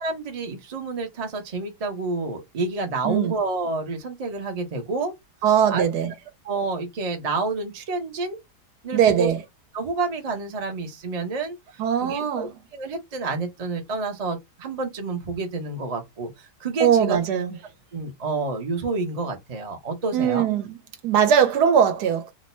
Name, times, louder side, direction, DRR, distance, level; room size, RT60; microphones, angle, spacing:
voice 1, 0.0-5.1 5.7-5.9 6.4-8.4 8.8-9.3 9.7-17.2 17.9-20.5, right 3 dB, 35° right, 0.6 m, -29 dB
voice 2, 5.4-6.1 8.9-9.4 11.8-12.5 16.8-17.5 20.1-20.8 21.0-22.3, right 8 dB, 70° right, 1.2 m, -20 dB
2.9 x 2.2 x 4.1 m
omnidirectional pair, 1.9 m